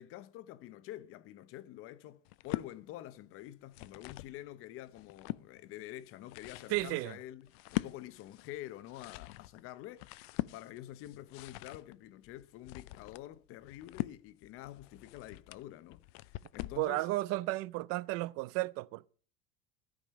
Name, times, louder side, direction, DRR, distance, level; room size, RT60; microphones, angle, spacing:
voice 1, 0.0-10.1 10.5-17.1, left 14 dB, 45° left, 0.7 m, -48 dB
sound 1, 2.2-2.7 3.5-4.4 4.8-5.5 6.0-16.9, left 20 dB, 80° left, 0.5 m, -42 dB
voice 2, 6.7-7.2 16.8-19.1, right 18 dB, 50° right, 0.4 m, -33 dB
13.0 x 5.2 x 7.4 m
cardioid pair, 155°, 30 cm